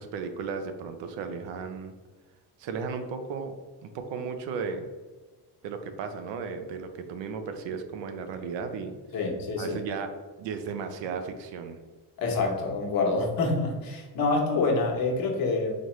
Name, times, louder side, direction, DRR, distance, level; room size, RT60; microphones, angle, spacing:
voice 1, 0.0-1.9 2.6-4.9 5.6-8.9 9.6-11.8, right 5 dB, 85° right, 7 dB, 0.6 m, -35 dB
voice 2, 9.1-9.8 12.2-15.7, left 3 dB, 55° left, 0 dB, 1.0 m, -26 dB
4.1 x 3.0 x 3.1 m, 1.4 s
cardioid pair, 120°, 42 cm